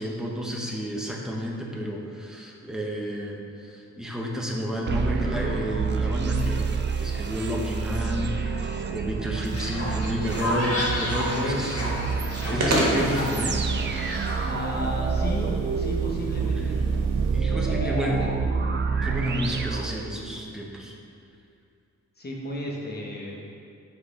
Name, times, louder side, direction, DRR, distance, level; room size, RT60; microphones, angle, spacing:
voice 1, 0.0-11.9 12.3-13.6 13.9-14.1 15.4-15.6 16.4-17.0 17.3-18.2 19.0-20.9, equal, ahead, -1 dB, 0.7 m, -31 dB
sound 1, 4.9-20.5, right 5 dB, 40° right, 0.4 m, -28 dB
Fowl, 9.5-14.5, left 1 dB, 50° left, 1.3 m, -32 dB
sound 2, 10.4-17.4, right 1 dB, 60° right, 1.4 m, -32 dB
voice 2, 11.2-11.6 12.4-12.6 14.4-16.8 17.5-18.3 22.2-23.4, left 1 dB, 35° left, -2 dB, 1.0 m, -34 dB
6.0 x 4.0 x 4.6 m, 2.5 s
wide cardioid pair, 135°, 30 cm